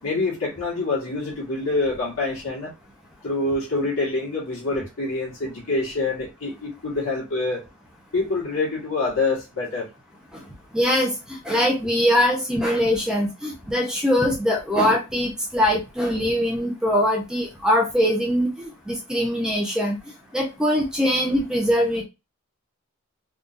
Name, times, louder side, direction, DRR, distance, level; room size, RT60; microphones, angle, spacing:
voice 1, 0.0-2.7 3.2-7.6 8.1-9.9, left 3 dB, 65° left, 1.8 m, -26 dB
voice 2, 10.7-11.1 11.4-20.0 20.3-22.0, equal, 5° right, 0.7 m, -22 dB
3.7 x 2.8 x 2.6 m
head